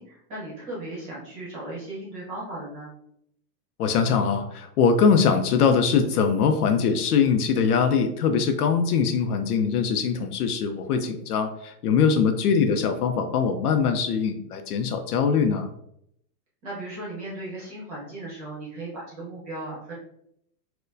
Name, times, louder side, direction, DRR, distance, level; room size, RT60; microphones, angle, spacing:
voice 1, 0.0-2.9 16.6-19.9, right 2 dB, 20° right, -6 dB, 0.9 m, -36 dB
voice 2, 3.8-15.7, left 6 dB, 65° left, 6 dB, 0.5 m, -22 dB
4.3 x 2.2 x 2.6 m, 0.74 s
supercardioid pair, 180°, 50 cm